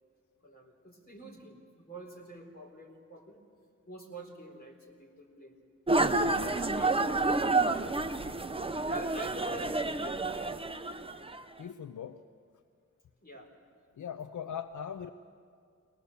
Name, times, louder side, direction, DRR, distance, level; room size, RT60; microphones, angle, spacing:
voice 1, 0.4-3.4 3.9-5.5 6.3-7.5 8.9-10.5 13.2-13.5, right 1 dB, 30° left, 0 dB, 4.1 m, -47 dB
sound 1, 5.9-11.4, right 2 dB, 20° right, 0.7 m, -29 dB
voice 2, 6.2-6.6 11.6-12.2 14.0-15.1, left 8 dB, 75° left, 9 dB, 0.7 m, -40 dB
24.5 x 18.0 x 6.9 m, 2.2 s
wide cardioid pair, 110°, 31 cm